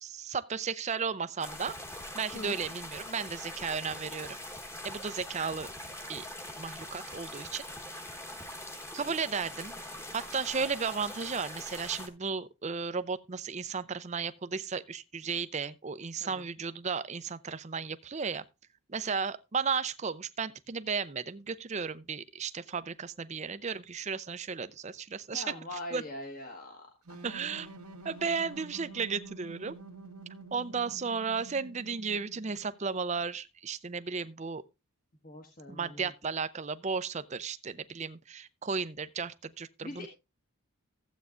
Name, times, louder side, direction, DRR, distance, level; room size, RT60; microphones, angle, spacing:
voice 1, 0.0-1.8 2.1-4.4 4.8-5.7 6.1-6.2 6.6-7.6 8.9-9.8 10.1-18.4 18.9-25.4 25.9-26.0 27.2-27.7 28.0-29.8 30.5-34.6 35.7-40.1, right 5 dB, 30° right, 0.5 m, -34 dB
sound 1, 1.4-12.1, left 1 dB, 10° left, 1.2 m, -43 dB
voice 2, 25.3-27.2 35.2-36.1 39.8-40.1, left 1 dB, 40° left, 1.4 m, -42 dB
sound 2, 27.1-32.7, right 3 dB, 85° right, 1.5 m, -48 dB
15.0 x 8.2 x 2.5 m
head